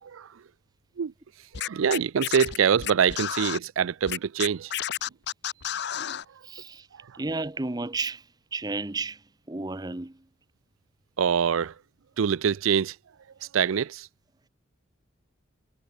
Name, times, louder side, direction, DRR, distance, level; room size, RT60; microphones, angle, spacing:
voice 1, 0.0-0.4 1.0-1.1 1.5-4.7 6.3-6.4 6.9-7.2 11.2-11.8 12.2-13.0 13.4-14.1, right 7 dB, 85° right, 0.4 m, -25 dB
Scratching (performance technique), 1.5-3.6 4.1-6.3, left 10 dB, 55° left, 0.6 m, -31 dB
voice 2, 6.4-6.9 7.2-8.2 8.5-9.2 9.5-10.2, right 3 dB, 20° right, 0.7 m, -32 dB
head